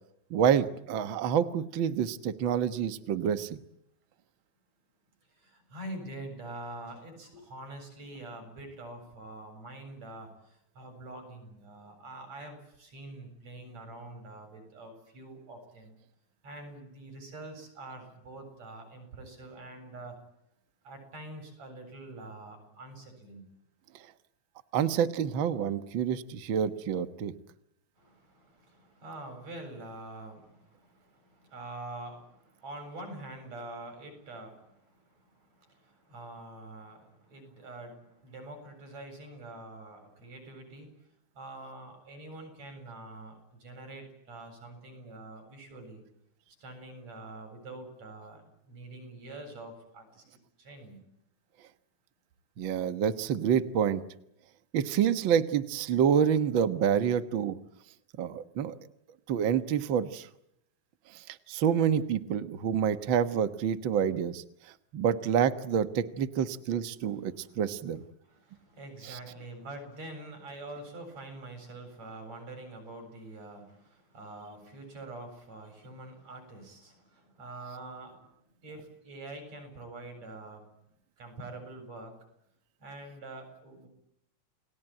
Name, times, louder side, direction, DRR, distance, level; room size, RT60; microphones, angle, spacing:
voice 1, 0.3-3.6 24.7-27.3 52.6-54.0 54.7-57.6 58.2-58.8 59.3-60.3 61.1-64.4 64.9-68.0 69.1-69.2, right 8 dB, 80° right, 9 dB, 1.1 m, -28 dB
voice 2, 5.3-15.9 16.4-20.2 20.8-23.5 28.0-40.9 41.3-46.0 46.6-51.0 67.1-67.5 68.3-78.3 78.6-80.7 81.2-82.1 82.8-83.9, right 2 dB, 45° right, 6 dB, 8.9 m, -45 dB
30.0 x 20.0 x 9.0 m, 0.78 s
omnidirectional pair, 4.2 m